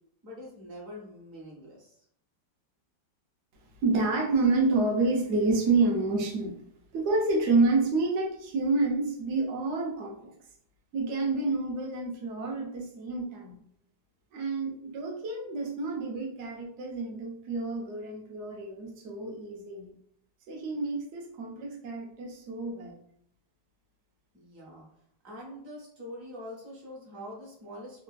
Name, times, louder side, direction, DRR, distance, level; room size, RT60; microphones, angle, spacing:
voice 1, 0.2-2.0 24.3-24.9 25.2-28.0, left 1 dB, 60° right, -4 dB, 1.0 m, -44 dB
voice 2, 3.8-6.6 6.9-10.3 10.9-13.6 14.3-19.9 20.5-23.0, right 3 dB, 80° right, 0 dB, 0.6 m, -28 dB
3.4 x 2.4 x 2.2 m, 0.67 s
omnidirectional pair, 2.0 m